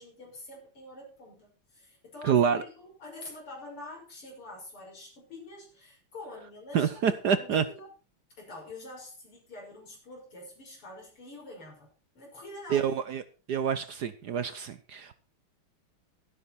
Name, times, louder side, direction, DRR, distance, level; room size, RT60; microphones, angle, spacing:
voice 1, 0.0-7.9 8.4-11.9 12.1-12.9, left 2 dB, 80° left, 6.8 m, -46 dB
voice 2, 2.2-2.6 6.7-7.6 12.7-13.2 13.5-15.2, right 7 dB, 60° right, 1.2 m, -27 dB
13.0 x 12.5 x 4.2 m
omnidirectional pair, 2.4 m